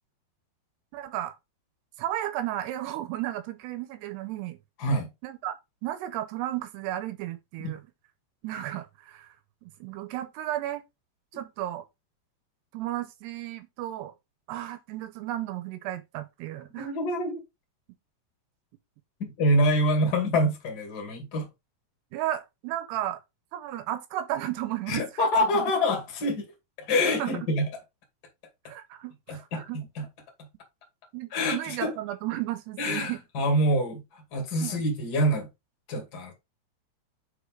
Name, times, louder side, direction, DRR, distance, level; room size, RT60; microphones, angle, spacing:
voice 1, 0.9-1.4 2.0-4.6 5.2-5.6 5.8-7.8 8.4-9.3 9.6-10.8 11.3-11.9 12.7-14.1 14.5-16.9 22.1-23.2 23.5-25.0 25.5-25.7 27.2-27.4 28.7-29.8 31.1-33.2 34.6-34.9, right 13 dB, 80° right, 2.6 m, -33 dB
voice 2, 16.8-17.4 19.2-21.5 24.9-26.4 26.8-27.7 29.3-30.0 31.3-31.9 32.8-35.5 35.9-36.3, equal, 35° left, 1.7 m, -26 dB
8.3 x 4.9 x 3.8 m
omnidirectional pair, 5.3 m